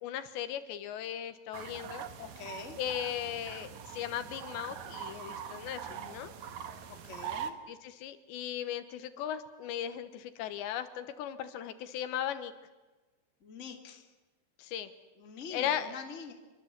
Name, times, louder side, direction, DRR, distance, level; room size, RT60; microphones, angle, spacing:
voice 1, 0.0-2.1 2.8-6.3 7.7-12.5 14.6-14.9 15.5-16.0, left 10 dB, 80° left, 11 dB, 3.4 m, -37 dB
sound 1, 1.5-7.5, right 8 dB, 60° right, 2.0 m, -43 dB
voice 2, 2.2-2.8 6.9-7.6 13.4-14.0 15.2-16.3, left 5 dB, 20° left, 5 dB, 2.0 m, -45 dB
26.5 x 24.0 x 8.2 m, 1.2 s
omnidirectional pair, 5.1 m